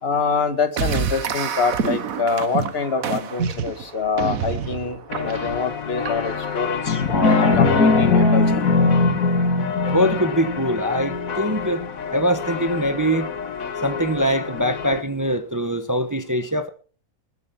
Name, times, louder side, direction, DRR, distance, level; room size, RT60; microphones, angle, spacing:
voice 1, 0.0-6.9 7.4-8.7, left 5 dB, 45° left, 9 dB, 1.8 m, -25 dB
sound 1, 0.8-6.6, right 6 dB, 70° right, 1.5 m, -28 dB
sound 2, 5.1-15.0, left 7 dB, 70° left, 1.6 m, -29 dB
sound 3, 6.9-11.9 12.3-12.4, left 3 dB, 85° left, 2.9 m, -19 dB
voice 2, 9.9-11.8 12.1-13.3 13.8-16.7, equal, 15° right, 8 dB, 1.0 m, -22 dB
20.0 x 8.0 x 5.8 m, 0.40 s
omnidirectional pair, 1.5 m